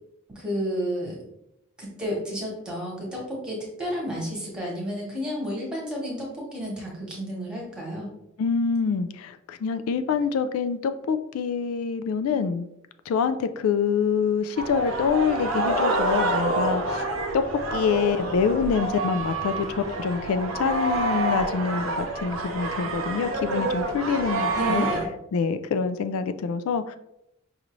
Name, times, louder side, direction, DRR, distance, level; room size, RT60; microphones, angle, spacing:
voice 1, 0.3-1.2 1.8-8.1 24.5-25.1, equal, 5° right, -4 dB, 1.2 m, -31 dB
voice 2, 8.4-12.7 13.1-17.0 17.3-17.4 17.7-24.9 25.3-27.0, left 6 dB, 85° left, 11 dB, 0.3 m, -26 dB
sound 1, 14.6-25.0, right 2 dB, 75° right, 0.7 m, -27 dB
5.5 x 2.6 x 3.0 m, 0.83 s
head